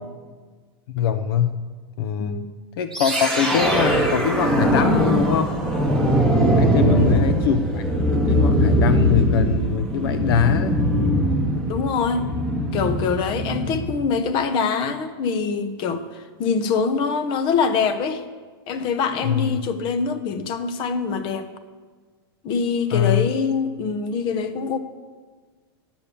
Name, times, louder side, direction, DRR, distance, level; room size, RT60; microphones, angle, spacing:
voice 1, 0.9-1.6 2.0-2.4 2.8-5.5 6.6-10.8 19.2-19.6 22.9-23.3, left 8 dB, 70° left, 10 dB, 0.6 m, -23 dB
sound 1, 2.9-14.0, equal, 5° left, 1.7 m, -21 dB
voice 2, 11.7-12.3 12.7-18.2 18.7-21.5 22.4-24.8, left 5 dB, 40° left, 10 dB, 0.9 m, -24 dB
10.0 x 7.0 x 7.0 m, 1.4 s
supercardioid pair, 135°, 13 cm